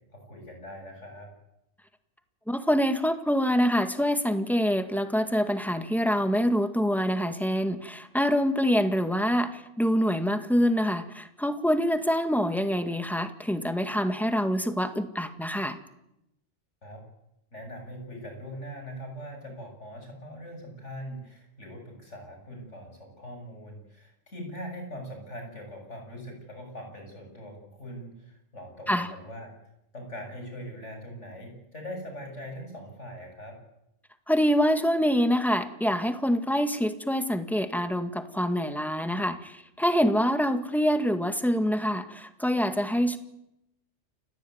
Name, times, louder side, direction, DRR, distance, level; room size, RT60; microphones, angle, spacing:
voice 1, 0.1-1.3 16.8-17.0 17.5-29.6 29.9-33.6, equal, 70° left, 3 dB, 7.9 m, -41 dB
voice 2, 2.5-15.8 28.9-29.1 34.3-43.2, equal, ahead, 8 dB, 1.8 m, -25 dB
29.0 x 16.0 x 9.4 m, 0.84 s
omnidirectional pair, 1.3 m